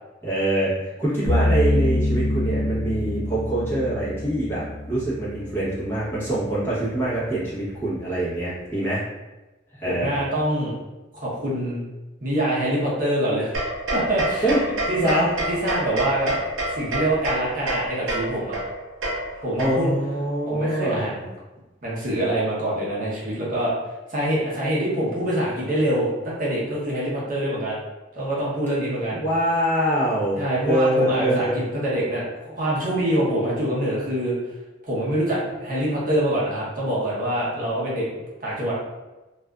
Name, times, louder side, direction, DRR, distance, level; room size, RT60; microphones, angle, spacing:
voice 1, 0.2-9.0 9.8-10.2 14.4-14.6 15.0-15.3 19.6-21.0 29.1-31.6, right 1 dB, 10° left, -10 dB, 0.9 m, -24 dB
sound 1, 1.3-6.4, left 1 dB, 65° left, 0.5 m, -25 dB
voice 2, 8.2-8.6 9.8-10.8 11.2-11.8 12.2-13.5 13.9-14.5 14.9-16.4 16.7-18.5 19.4-19.9 20.4-21.3 21.8-23.7 24.1-27.8 28.1-29.2 30.4-34.4 34.8-38.0 38.4-38.7, right 1 dB, 45° right, -6 dB, 0.7 m, -25 dB
sound 2, 13.5-20.1, right 1 dB, 85° right, 0.6 m, -28 dB
2.5 x 2.4 x 2.2 m, 1.1 s
head